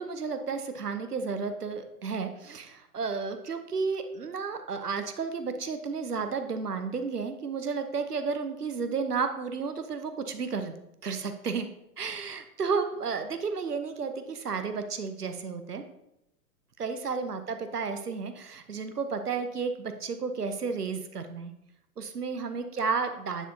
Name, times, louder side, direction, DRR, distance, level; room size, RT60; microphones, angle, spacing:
voice 1, 0.0-10.8 11.0-11.7 12.0-15.8 16.8-21.5 22.0-23.5, right 5 dB, 80° right, 8 dB, 0.8 m, -32 dB
9.9 x 4.3 x 2.7 m, 0.84 s
figure-of-eight pair, 105°, 46 cm